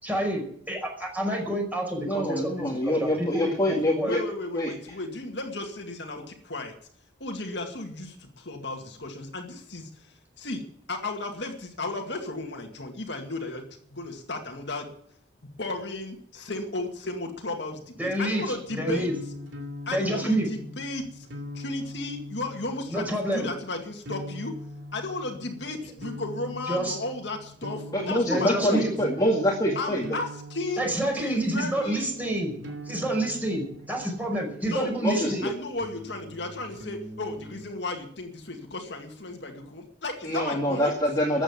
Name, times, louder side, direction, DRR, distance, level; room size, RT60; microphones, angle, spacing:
voice 1, 0.0-4.1 18.0-19.1 19.9-20.5 22.9-23.5 26.7-27.0 28.3-28.9 30.8-35.5, right 1 dB, 10° right, 1 dB, 5.3 m, -28 dB
voice 2, 2.0-4.2 4.5-4.7 27.9-30.2 35.0-35.5 40.2-41.4, equal, 20° left, -2 dB, 2.2 m, -25 dB
voice 3, 4.0-6.7 7.2-14.9 15.6-19.1 19.9-21.3 21.5-24.6 24.9-28.9 29.8-30.9 31.2-32.1 34.6-35.0 35.2-41.0, left 2 dB, 65° left, 3 dB, 2.2 m, -34 dB
sound 1, 18.6-34.9 35.7-37.7, left 1 dB, 90° right, 3.0 m, -42 dB
14.0 x 8.8 x 9.8 m, 0.64 s
head